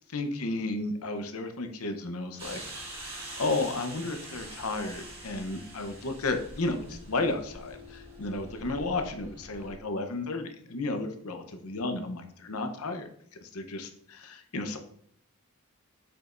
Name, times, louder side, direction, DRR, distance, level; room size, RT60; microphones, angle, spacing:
voice 1, 0.1-2.6 3.1-13.1 13.4-14.8, left 2 dB, 80° left, 6 dB, 0.9 m, -33 dB
sound 1, 2.4-9.8, right 1 dB, 25° right, 1.8 m, -44 dB
7.4 x 5.2 x 2.6 m, 0.65 s
head